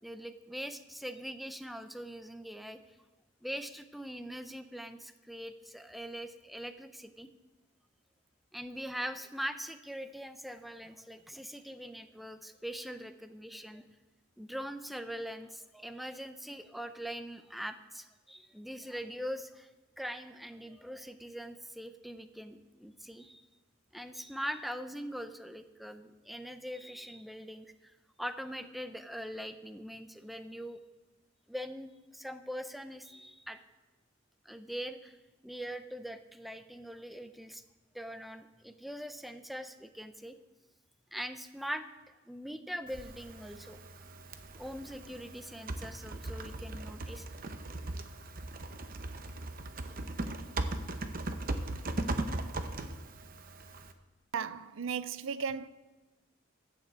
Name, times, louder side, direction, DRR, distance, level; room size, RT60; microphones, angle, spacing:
voice 1, 0.0-2.8 3.4-7.3 8.5-13.8 14.4-19.7 20.0-23.4 23.9-30.8 31.5-33.6 34.4-35.2 35.4-37.6 37.9-40.4 41.1-41.9 42.3-43.8 44.6-47.3, equal, ahead, 0.5 m, -42 dB
Typing, 42.9-53.9, right 2 dB, 45° right, 0.8 m, -39 dB
voice 2, 54.3-55.7, right 6 dB, 75° right, 0.5 m, -35 dB
11.5 x 6.8 x 8.1 m
head